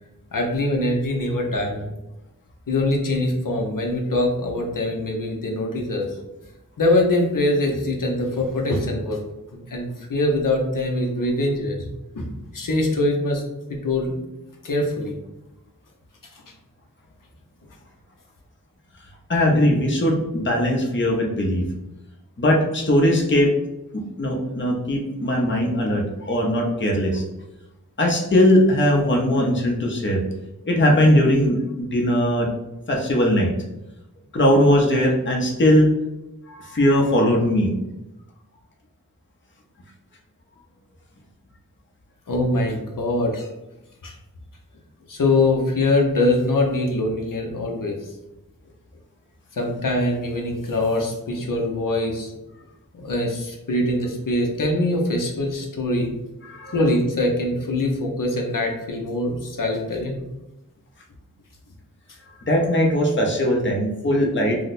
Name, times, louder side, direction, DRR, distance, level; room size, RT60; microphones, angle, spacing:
voice 1, 0.3-1.9 2.7-6.1 6.8-9.2 9.5-11.8 12.1-12.3 12.5-13.4 13.7-14.2 14.6-15.2 42.3-43.5 44.0-44.1 45.1-48.1 49.5-52.4 52.9-56.1 56.7-60.2, left 1 dB, 65° left, 0 dB, 0.7 m, -23 dB
voice 2, 19.3-21.6 22.4-23.5 23.9-27.2 28.0-30.2 30.7-32.5 32.9-33.5 34.3-35.9 36.5-37.7 56.4-56.8 62.5-64.6, left 1 dB, 35° left, 0 dB, 0.7 m, -19 dB
2.8 x 2.1 x 4.0 m, 0.95 s
wide cardioid pair, 50°, 35 cm